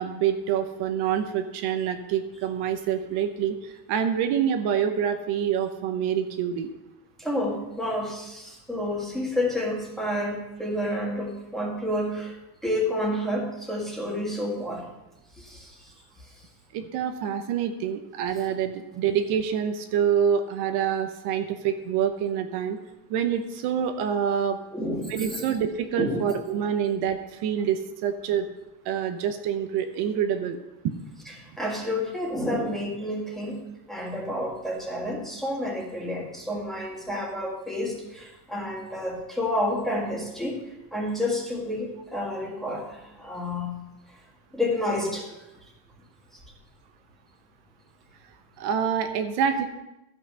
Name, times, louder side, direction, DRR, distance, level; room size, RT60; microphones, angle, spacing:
voice 1, 0.0-6.7 16.7-22.8 23.1-24.6 25.1-28.5 28.8-30.6 30.8-31.0 48.6-49.6, right 8 dB, 65° right, 7 dB, 0.9 m, -26 dB
voice 2, 7.2-12.4 12.6-14.9 15.4-16.3 24.7-25.4 26.0-26.3 31.2-33.6 33.9-43.8 44.1-44.2 44.5-45.3, left 1 dB, ahead, -3 dB, 1.7 m, -30 dB
13.5 x 5.9 x 5.5 m, 0.95 s
cardioid pair, 175°, 43 cm